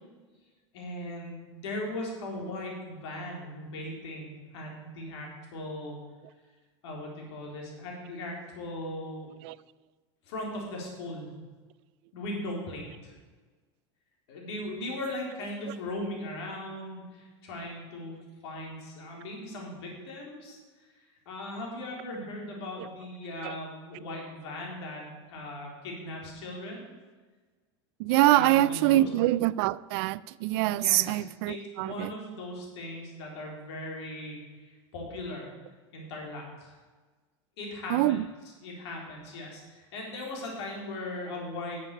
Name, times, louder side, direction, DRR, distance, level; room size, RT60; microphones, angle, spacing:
voice 1, 0.7-6.0 6.8-9.3 10.2-11.3 12.1-13.1 14.3-18.1 18.4-20.6 21.0-26.9 28.3-29.1 30.8-35.5 35.9-36.8 37.6-38.2 38.6-41.8, left 1 dB, 80° left, 3.9 m, -38 dB
voice 2, 28.0-32.1 37.9-38.2, right 16 dB, 65° right, 0.4 m, -24 dB
11.0 x 7.5 x 6.6 m
supercardioid pair, 115°, 14 cm